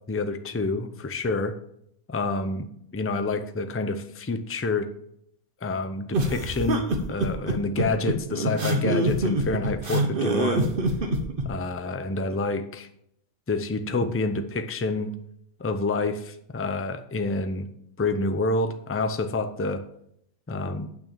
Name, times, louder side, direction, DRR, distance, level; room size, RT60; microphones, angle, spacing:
voice 1, 0.1-1.5 2.1-2.7 2.9-4.9 5.6-10.7 11.5-12.9 13.5-15.1 15.6-17.7 18.0-19.8 20.5-20.9, left 3 dB, 20° left, 9 dB, 0.4 m, -28 dB
sound 1, 6.1-11.5, right 2 dB, 40° right, 1.2 m, -25 dB
9.0 x 6.2 x 7.2 m, 0.73 s
omnidirectional pair, 1.5 m